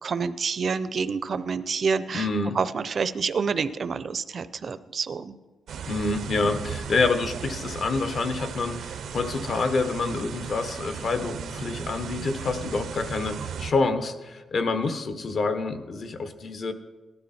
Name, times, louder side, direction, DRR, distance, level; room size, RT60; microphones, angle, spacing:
voice 1, 0.0-2.3 2.5-5.4, right 5 dB, 45° right, 13 dB, 0.7 m, -28 dB
voice 2, 2.1-2.6 5.9-16.7, left 3 dB, 50° left, 8 dB, 1.3 m, -27 dB
sound 1, 5.7-13.7, right 7 dB, 80° right, 0.9 m, -36 dB
18.0 x 12.5 x 4.4 m, 1.2 s
wide cardioid pair, 145°, 0 cm